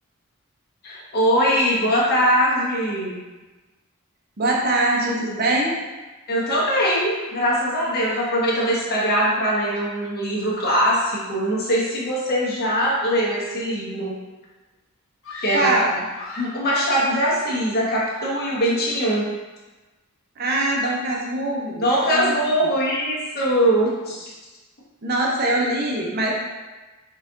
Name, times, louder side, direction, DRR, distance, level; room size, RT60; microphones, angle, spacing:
voice 1, 0.8-3.2 6.3-14.2 15.4-15.7 16.4-19.3 21.8-24.3, equal, 45° left, -5 dB, 1.0 m, -21 dB
voice 2, 4.4-5.8 15.5-16.0 20.4-21.8 22.1-22.3 25.0-26.3, right 1 dB, 45° right, -2 dB, 0.6 m, -22 dB
Screaming, 15.2-16.7 17.2-17.8 18.1-18.5, left 2 dB, 70° left, 1.0 m, -38 dB
4.3 x 2.4 x 3.7 m, 1.2 s
head